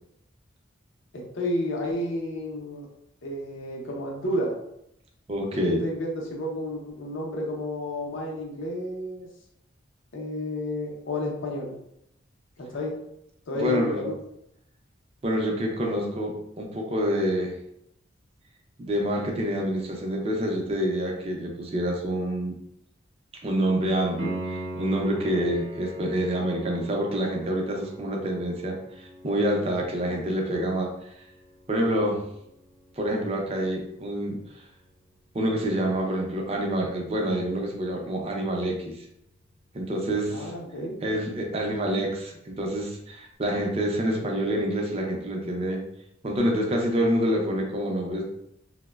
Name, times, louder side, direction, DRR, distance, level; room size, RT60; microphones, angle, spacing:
voice 1, 1.3-2.9 3.2-4.6 5.5-9.3 10.1-11.8 12.6-13.0 13.5-14.1 25.3-25.4 30.0-30.1 40.3-40.9, left 1 dB, 75° left, -1 dB, 0.5 m, -31 dB
voice 2, 5.3-5.8 13.5-14.0 15.2-17.5 18.8-22.5 23.4-31.1 31.7-32.2 33.0-34.6 35.3-39.1 39.7-40.5 41.0-45.8 46.2-48.2, equal, 30° right, 0 dB, 0.4 m, -27 dB
Piano, 24.2-34.8 38.1-38.2, right 1 dB, 80° right, 0.6 m, -41 dB
2.9 x 2.0 x 2.2 m, 0.76 s
head